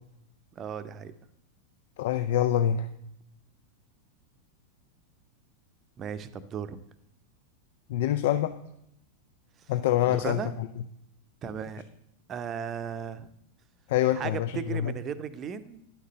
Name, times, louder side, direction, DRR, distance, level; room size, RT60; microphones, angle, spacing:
voice 1, 0.5-1.1 6.0-6.8 10.0-10.5 11.4-11.8 12.3-13.3 14.1-15.8, right 7 dB, 30° right, 13 dB, 0.7 m, -36 dB
voice 2, 2.0-2.9 7.9-8.5 9.7-10.4 13.9-14.9, left 11 dB, 55° left, 10 dB, 0.5 m, -25 dB
9.7 x 6.5 x 7.6 m, 0.80 s
figure-of-eight pair, 90°, 0 cm